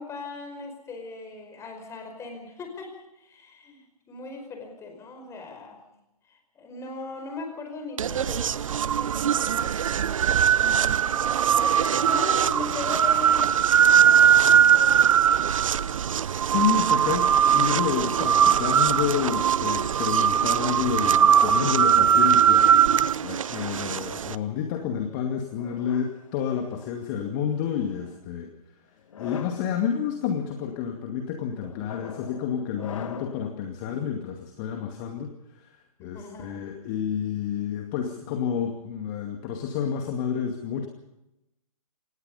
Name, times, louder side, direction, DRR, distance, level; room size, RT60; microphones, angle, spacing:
voice 1, 0.0-5.8 6.3-9.8 10.6-11.2 11.9-13.5 14.0-15.1 36.0-36.6, left 3 dB, 15° left, 5 dB, 5.1 m, -39 dB
sound 1, 8.0-24.3, right 8 dB, 60° right, 0.7 m, -21 dB
voice 2, 16.5-28.5 29.2-35.7 36.0-40.9, left 8 dB, 30° left, 4 dB, 2.2 m, -29 dB
sound 2, 25.6-27.0 27.8-28.2 29.0-29.7 30.3-30.7 31.6-33.5, left 7 dB, 60° left, 2.0 m, -42 dB
26.0 x 19.0 x 5.6 m, 0.90 s
figure-of-eight pair, 130°, 19 cm